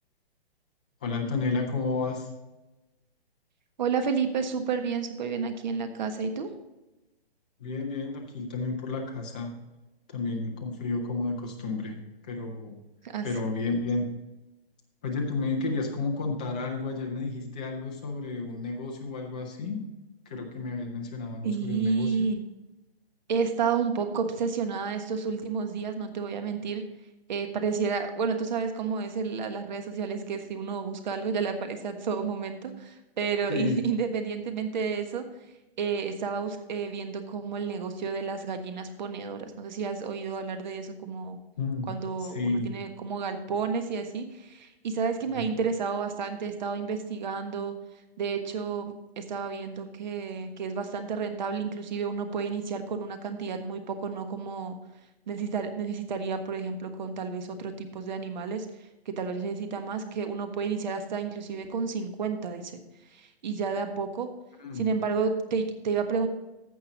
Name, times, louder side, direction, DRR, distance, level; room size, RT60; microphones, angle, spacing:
voice 1, 1.0-2.3 7.6-9.5 10.1-12.8 13.2-14.1 15.0-19.8 20.3-22.3 33.5-33.8 41.6-42.8 45.3-45.5 64.6-64.8, left 3 dB, 10° left, 1 dB, 0.4 m, -31 dB
voice 2, 3.8-6.5 13.0-13.3 21.4-22.4 23.3-26.8 27.3-35.2 35.8-41.4 41.9-47.7 48.2-54.8 55.3-58.7 59.0-62.8 63.1-64.3 64.7-66.3, right 5 dB, 45° right, 7 dB, 1.4 m, -31 dB
15.0 x 5.4 x 4.0 m, 1.0 s
hypercardioid pair, 160°, 31 cm